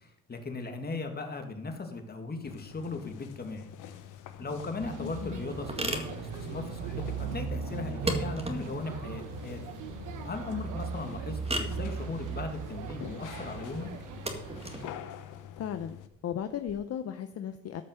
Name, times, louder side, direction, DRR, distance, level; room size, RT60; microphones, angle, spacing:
voice 1, 0.0-3.9 4.4-9.6 10.2-13.9, left 3 dB, 30° left, 5 dB, 2.1 m, -38 dB
sound 1, 2.4-16.1, left 10 dB, 85° left, 1.0 m, -46 dB
sound 2, 4.3-16.7, right 1 dB, 20° right, 1.9 m, -40 dB
sound 3, 4.8-14.9, right 6 dB, 85° right, 1.1 m, -38 dB
voice 2, 5.0-5.5 15.6-17.8, left 9 dB, 55° left, 9 dB, 0.7 m, -36 dB
13.5 x 5.6 x 6.7 m, 0.80 s
cardioid pair, 90°, 30 cm